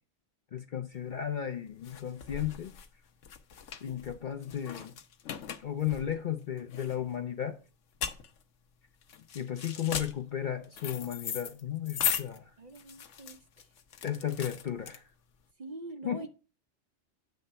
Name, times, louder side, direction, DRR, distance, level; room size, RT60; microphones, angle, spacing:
voice 1, 0.5-2.7 3.8-4.9 5.6-7.6 9.3-12.5 14.0-15.0 16.0-16.2, left 10 dB, 55° left, 0.6 m, -34 dB
sound 1, 1.0-15.4, left 7 dB, 85° left, 1.1 m, -39 dB
voice 2, 12.6-13.7 15.6-16.3, right 2 dB, 40° right, 0.8 m, -44 dB
9.2 x 3.3 x 6.8 m
omnidirectional pair, 1.2 m